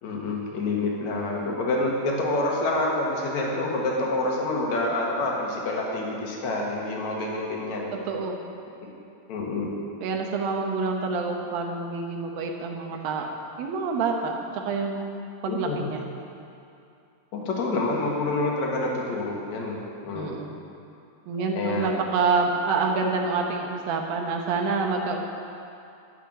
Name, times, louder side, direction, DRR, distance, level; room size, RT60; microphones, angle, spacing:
voice 1, 0.0-7.9 9.3-9.8 15.5-15.9 17.3-19.8 20.0-20.4 21.6-22.0, left 2 dB, 55° left, -2 dB, 2.6 m, -27 dB
voice 2, 7.9-8.4 10.0-15.0 15.4-16.0 20.1-20.5 21.3-25.2, right 4 dB, 80° right, 2 dB, 2.8 m, -27 dB
12.5 x 5.8 x 8.8 m, 2.6 s
omnidirectional pair, 4.2 m